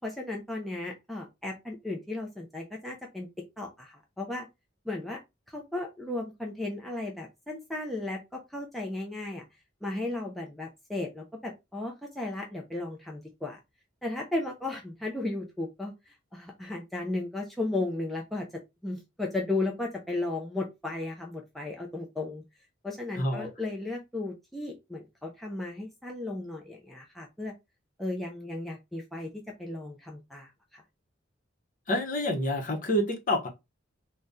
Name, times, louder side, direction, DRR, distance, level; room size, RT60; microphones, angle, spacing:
voice 1, 0.0-3.3 3.6-4.5 4.9-5.2 5.5-9.4 9.8-13.6 14.0-15.9 16.3-18.5 18.8-22.4 22.8-27.5 28.0-29.3 29.6-30.8, left 2 dB, ahead, 0.4 m, -35 dB
voice 2, 23.1-23.5 31.9-33.5, left 1 dB, 40° left, 0.7 m, -28 dB
2.6 x 2.1 x 3.5 m
head